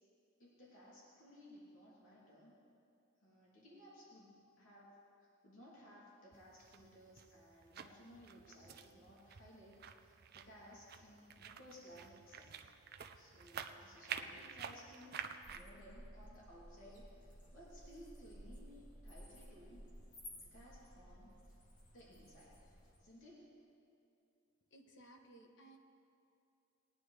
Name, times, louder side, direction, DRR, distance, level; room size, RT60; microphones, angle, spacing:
voice 1, 0.4-2.5 3.2-12.5 13.1-19.9 20.3-21.3 21.9-22.6 23.0-23.6, equal, 85° left, -7 dB, 3.0 m, -59 dB
sound 1, 6.3-15.6, right 7 dB, 50° right, 0.5 m, -50 dB
sound 2, 15.4-23.0, equal, 45° left, 2.1 m, -56 dB
voice 2, 24.7-25.8, right 1 dB, 65° left, 3 dB, 1.2 m, -59 dB
20.0 x 9.6 x 3.4 m, 2.6 s
head